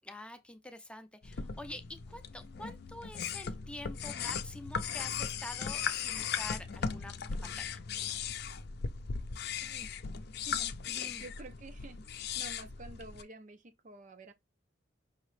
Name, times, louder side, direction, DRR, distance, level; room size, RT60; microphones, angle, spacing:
voice 1, 0.0-1.8 2.1-7.8 10.8-11.2, left 1 dB, 5° left, 0.6 m, -47 dB
sound 1, 1.2-13.2, left 7 dB, 60° left, 0.5 m, -38 dB
voice 2, 9.6-10.0 10.5-14.3, right 2 dB, 45° right, 0.6 m, -50 dB
5.6 x 2.9 x 3.2 m
head